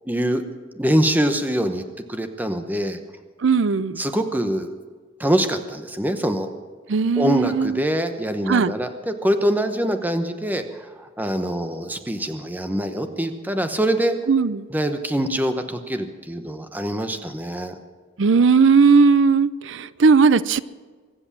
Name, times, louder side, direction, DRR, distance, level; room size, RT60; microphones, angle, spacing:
voice 1, 0.1-0.4 0.8-3.0 4.0-4.7 5.2-6.5 7.2-14.2 14.7-17.7, equal, 10° right, 7 dB, 0.9 m, -24 dB
voice 2, 3.4-4.0 6.9-7.8 8.5-8.7 14.3-14.7 18.2-20.6, right 5 dB, 65° right, 17 dB, 0.5 m, -17 dB
24.0 x 8.0 x 7.3 m, 1.5 s
head